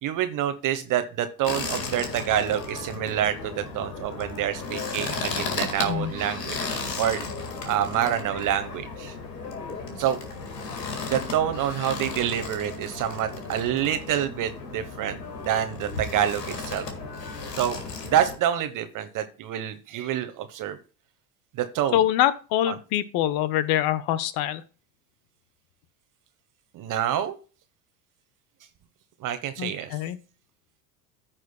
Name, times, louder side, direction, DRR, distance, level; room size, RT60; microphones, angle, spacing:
voice 1, 0.0-7.2 7.7-9.1 10.0-10.2 11.1-16.8 17.5-20.8 21.6-22.0 22.7-22.8 26.7-27.4 29.2-29.9, right 10 dB, 40° right, 9 dB, 1.1 m, -27 dB
sound 1, 1.4-18.4, left 4 dB, 85° left, 1.9 m, -34 dB
voice 2, 21.9-24.6 29.6-30.2, left 12 dB, 50° left, 16 dB, 0.9 m, -24 dB
14.5 x 6.2 x 2.2 m, 0.35 s
hypercardioid pair, 75°, 48 cm